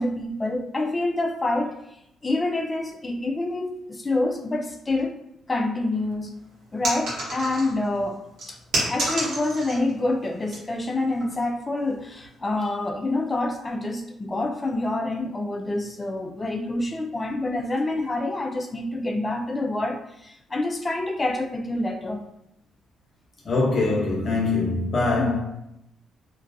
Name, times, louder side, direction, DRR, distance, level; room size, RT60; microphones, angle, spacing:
voice 1, 0.0-5.1 5.5-6.4 6.7-22.2 25.2-25.4, left 2 dB, 25° left, 0.3 m, -27 dB
sound 1, 6.8-7.9 8.4-9.9 10.2-10.6 11.2-11.4, right 1 dB, 75° right, 1.0 m, -28 dB
voice 2, 23.4-25.4, left 3 dB, 45° left, 0.8 m, -23 dB
2.3 x 2.2 x 2.5 m
cardioid pair, 90°, 0 cm